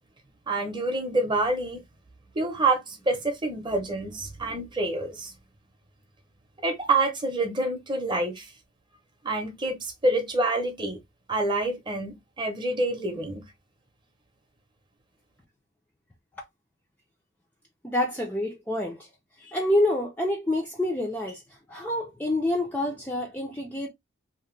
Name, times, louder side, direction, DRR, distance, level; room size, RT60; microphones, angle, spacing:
voice 1, 0.5-1.8 2.3-5.3 6.6-8.5 9.2-11.0 11.3-13.4, right 2 dB, 20° right, 0.7 m, -27 dB
voice 2, 17.8-19.1 19.4-23.9, left 1 dB, 10° left, 0.4 m, -27 dB
2.8 x 2.1 x 3.1 m
head